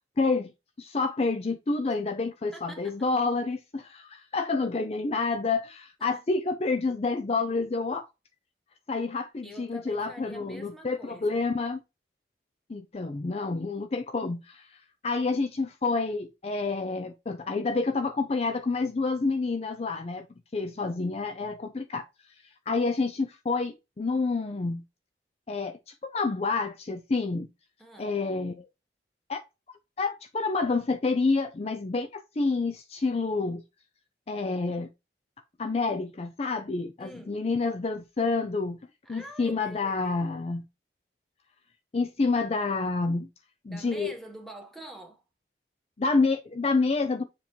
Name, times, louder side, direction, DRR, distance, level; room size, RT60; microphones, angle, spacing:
voice 1, 0.2-0.5 0.8-8.1 8.9-11.8 12.7-20.3 20.5-22.0 22.7-24.8 25.5-27.5 28.0-28.7 29.3-29.4 29.7-33.6 34.3-34.9 35.6-38.8 39.1-40.6 41.9-43.3 43.6-44.1 46.0-47.2, left 3 dB, 35° left, 0.4 m, -28 dB
voice 2, 2.5-3.0 6.0-6.2 9.4-11.4 27.8-28.1 37.0-37.4 39.0-40.4 43.7-45.2, equal, ahead, 1.2 m, -46 dB
7.1 x 3.0 x 4.4 m
head